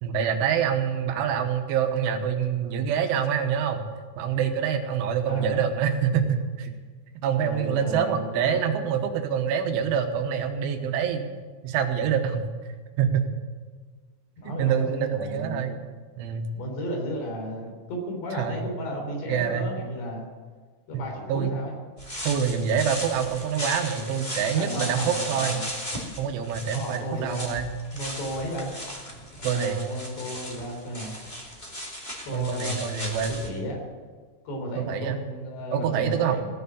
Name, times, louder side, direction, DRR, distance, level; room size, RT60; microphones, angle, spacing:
voice 1, 0.0-3.8 4.2-6.7 7.2-11.3 11.6-13.3 14.5-15.8 16.2-16.5 18.4-18.6 19.3-19.7 21.3-21.6 22.2-25.6 26.2-27.7 29.4-29.8 32.3-33.4 34.8-35.2 35.7-36.4, right 8 dB, 90° right, 5 dB, 3.7 m, -26 dB
voice 2, 5.3-5.6 7.4-8.9 14.4-15.7 16.5-20.3 20.9-21.7 24.5-25.7 26.7-27.5 27.9-28.7 29.5-31.2 32.2-32.8 33.4-33.8 34.5-36.5, equal, 65° left, 0 dB, 5.5 m, -34 dB
sound 1, 22.0-33.5, equal, 20° left, 1.3 m, -36 dB
17.5 x 7.0 x 10.0 m, 1.5 s
omnidirectional pair, 5.4 m